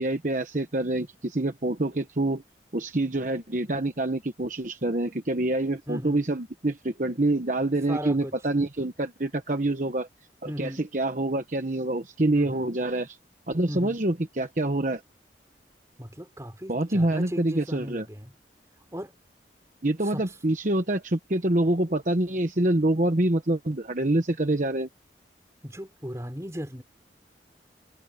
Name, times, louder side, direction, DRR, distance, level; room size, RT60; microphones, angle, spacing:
voice 1, 0.0-2.4 2.7-10.1 10.4-13.2 13.5-15.0 16.7-18.1 19.8-24.9, right 1 dB, 45° right, 1.1 m, -26 dB
voice 2, 5.9-6.2 7.9-8.3 10.4-10.8 12.3-12.7 13.7-14.0 16.0-18.3 18.9-19.1 20.0-20.2 25.6-26.8, equal, 15° right, 3.8 m, -36 dB
head